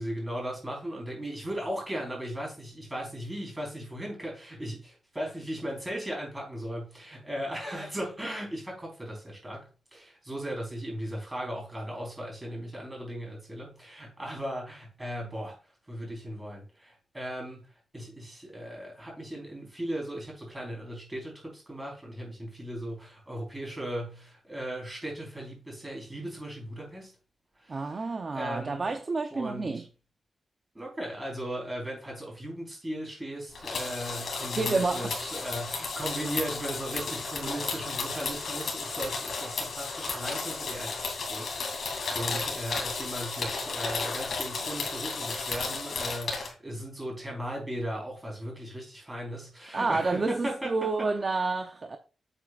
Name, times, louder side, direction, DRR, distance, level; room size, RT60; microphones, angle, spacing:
voice 1, 0.0-15.6 15.9-17.7 17.9-27.1 27.6-28.9 29.3-29.9 30.7-41.0 41.3-51.1, equal, 15° right, 4.5 m, -37 dB
voice 2, 27.7-29.8 34.6-35.1 49.7-52.0, right 3 dB, 35° right, 0.8 m, -29 dB
sound 1, 33.5-46.5, left 4 dB, 65° left, 2.7 m, -33 dB
8.0 x 7.9 x 2.5 m
wide cardioid pair, 130°, 0 cm